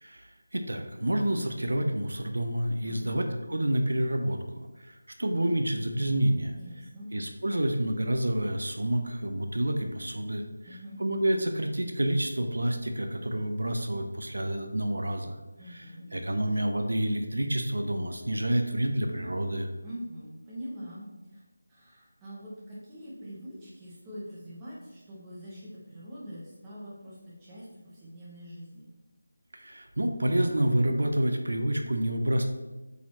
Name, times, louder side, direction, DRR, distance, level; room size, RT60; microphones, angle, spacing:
voice 1, 0.0-6.6 7.1-10.5 11.0-15.4 16.1-19.7 29.5-32.4, right 1 dB, 90° right, 5 dB, 0.9 m, -28 dB
voice 2, 2.8-3.2 6.5-7.1 10.6-11.0 15.6-16.5 19.8-21.1 21.3-21.4 21.7-28.9, equal, 10° right, -8 dB, 1.1 m, -44 dB
8.1 x 4.2 x 3.1 m, 1.1 s
figure-of-eight pair, 175°, 0 cm